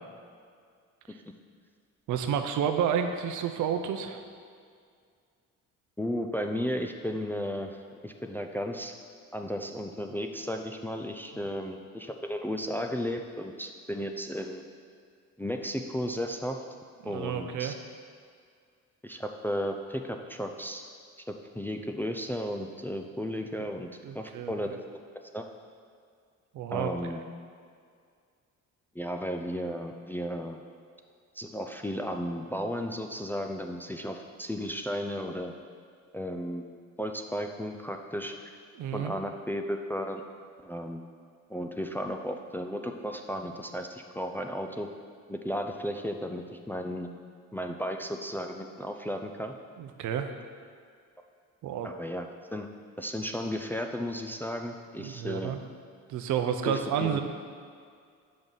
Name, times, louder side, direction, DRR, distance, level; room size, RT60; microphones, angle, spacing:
voice 1, 2.1-4.2 17.0-17.7 24.0-24.5 26.5-27.2 38.8-39.1 49.8-50.3 51.6-51.9 55.0-55.6 56.1-57.2, right 8 dB, 80° right, 7 dB, 0.6 m, -30 dB
voice 2, 6.0-9.0 9.3-14.6 15.4-16.6 17.0-17.7 19.0-20.8 21.3-23.9 24.1-24.7 25.3-25.4 26.7-27.2 29.0-30.6 31.4-35.5 36.1-36.6 37.0-38.3 38.9-40.2 40.6-41.0 41.5-44.9 45.3-47.1 47.5-49.5 51.8-52.7 53.0-55.5 56.6-57.2, equal, 5° left, 4 dB, 0.3 m, -34 dB
6.0 x 5.2 x 4.0 m, 2.2 s
cardioid pair, 90°, 30 cm